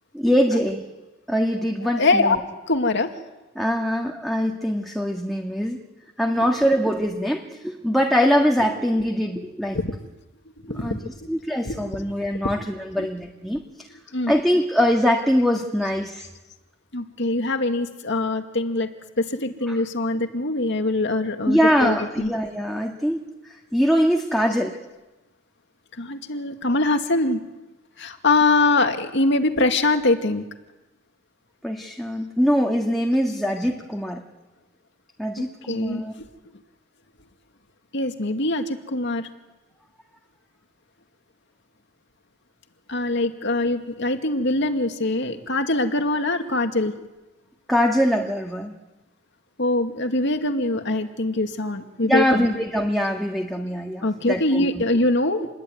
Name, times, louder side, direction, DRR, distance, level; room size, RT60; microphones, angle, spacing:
voice 1, 0.1-0.8 1.3-2.4 3.6-5.8 6.2-9.8 10.7-13.6 14.3-16.3 19.7-19.8 21.5-24.8 31.6-34.2 35.2-36.1 47.7-48.7 52.0-54.8, equal, ahead, 0 dB, 2.0 m, -23 dB
voice 2, 2.0-2.4 2.7-3.1 9.7-9.8 10.6-11.1 11.7-11.8 13.0-13.1 14.1-14.3 16.9-18.9 19.2-22.3 26.0-27.4 28.0-30.4 35.7-36.0 37.9-39.3 42.9-46.9 49.6-52.5 54.0-55.5, left 2 dB, 60° left, 6 dB, 2.3 m, -23 dB
28.0 x 21.5 x 9.5 m, 1.1 s
head